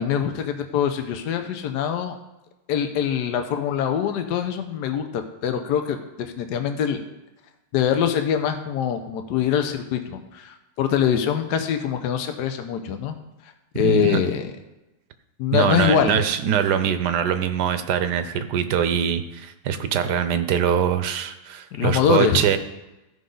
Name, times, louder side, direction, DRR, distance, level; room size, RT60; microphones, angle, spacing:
voice 1, 0.0-2.2 2.7-7.0 7.7-13.1 13.7-14.5 15.4-16.2 21.7-22.5, left 8 dB, 80° left, 6 dB, 1.3 m, -24 dB
voice 2, 13.7-14.2 15.5-22.6, right 8 dB, 75° right, 10 dB, 1.3 m, -23 dB
14.0 x 5.5 x 3.8 m, 0.97 s
omnidirectional pair, 1.8 m